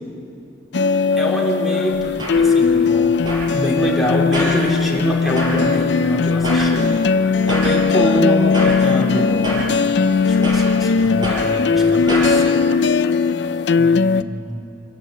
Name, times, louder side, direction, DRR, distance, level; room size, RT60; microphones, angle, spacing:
sound 1, 0.7-14.2, left 5 dB, 70° left, 0.5 m, -18 dB
voice 1, 1.2-2.0 2.4-3.1 3.5-6.9 7.5-9.6 10.2-12.6 13.8-14.6, equal, ahead, -3 dB, 2.9 m, -25 dB
sound 2, 1.9-12.3, equal, 25° right, 5.7 m, -29 dB
25.0 x 15.5 x 7.6 m, 2.6 s
head